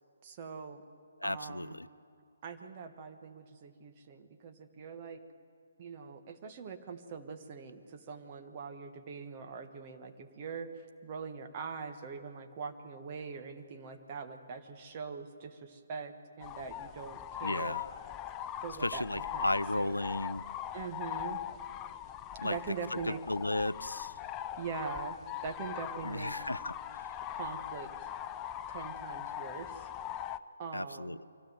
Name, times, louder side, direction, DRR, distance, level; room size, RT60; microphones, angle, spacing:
voice 1, 0.2-0.8 1.2-1.8 2.4-5.2 5.8-10.7 11.0-17.8 18.6-19.5 19.8-20.0 20.7-21.4 22.4-23.2 24.6-26.3 27.3-28.1 28.7-29.9 30.6-31.2, right 5 dB, 30° right, 6 dB, 1.4 m, -42 dB
voice 2, 1.2-1.9 17.4-17.8 18.8-20.4 22.4-22.6 22.9-24.1 26.0-27.1 30.7-31.2, left 1 dB, 80° left, 18 dB, 0.4 m, -34 dB
sound 1, 16.4-30.4, left 10 dB, 20° left, 0.5 m, -41 dB
24.0 x 16.0 x 7.9 m, 2.2 s
figure-of-eight pair, 135°, 0 cm